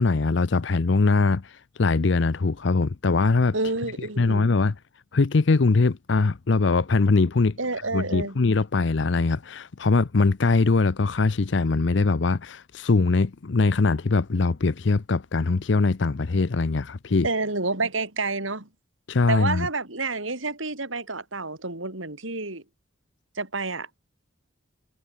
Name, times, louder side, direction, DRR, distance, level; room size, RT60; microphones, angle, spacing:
voice 1, 0.0-3.5 4.2-4.7 5.1-7.6 7.9-17.3 19.1-19.7, left 3 dB, 65° left, 0.6 m, -22 dB
voice 2, 3.5-4.5 7.6-8.4 17.2-18.7 19.3-22.6 23.4-24.0, right 3 dB, 80° right, 5.4 m, -29 dB
head